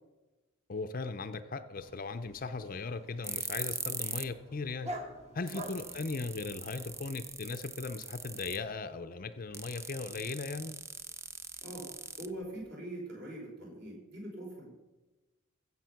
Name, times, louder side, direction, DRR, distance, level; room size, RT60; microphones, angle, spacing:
voice 1, 0.7-4.9 5.3-10.7, left 3 dB, 40° left, 10 dB, 0.5 m, -38 dB
Dog, 1.7-7.1, right 1 dB, 30° right, 1.3 m, -47 dB
sound 1, 3.2-4.4 4.7-4.8 5.2-5.3 5.5-8.7 9.5-12.7, right 5 dB, 15° right, 0.3 m, -41 dB
voice 2, 12.2-14.7, right 1 dB, 50° right, -1 dB, 4.5 m, -43 dB
15.5 x 7.3 x 5.8 m, 1.1 s
head